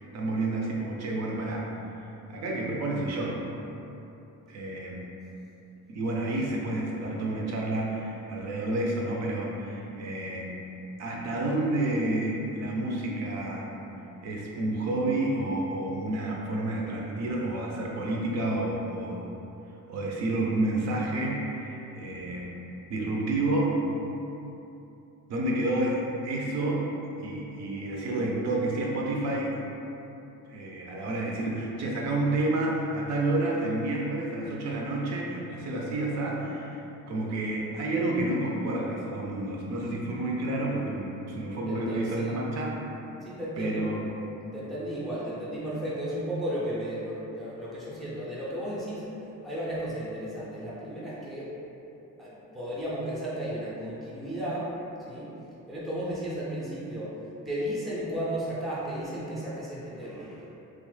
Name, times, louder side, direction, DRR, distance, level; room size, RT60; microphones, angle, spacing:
voice 1, 0.1-1.7 2.3-3.4 4.5-5.0 5.9-10.5 11.0-13.7 14.2-19.2 19.9-22.5 22.9-23.8 25.3-26.9 27.2-29.6 30.5-36.8 37.1-42.8 43.6-44.0, right 2 dB, 55° right, -2 dB, 0.5 m, -29 dB
voice 2, 41.7-42.4 43.2-43.9 44.5-51.6 52.2-54.7 55.0-55.3 55.7-57.2 57.5-60.4, equal, ahead, -8 dB, 0.4 m, -34 dB
3.0 x 2.0 x 3.1 m, 2.9 s
cardioid pair, 155°, 32 cm